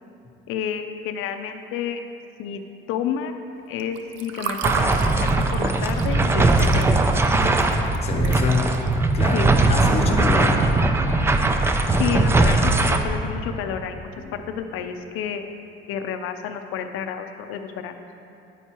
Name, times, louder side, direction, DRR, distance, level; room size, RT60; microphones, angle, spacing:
voice 1, 0.5-2.0 2.4-2.6 2.9-3.3 3.7-6.9 9.3-9.5 12.0-15.5 15.9-18.0, left 8 dB, 80° left, 6 dB, 0.5 m, -30 dB
Water / Fill (with liquid), 3.8-8.9, right 7 dB, 65° right, 0.6 m, -33 dB
sound 1, 4.6-13.0, right 2 dB, 10° right, 0.3 m, -20 dB
voice 2, 8.0-8.7 9.1-10.6 14.2-14.3, left 3 dB, 30° left, 2 dB, 0.8 m, -25 dB
9.9 x 9.0 x 2.9 m, 2.8 s
cardioid pair, 165°, 21 cm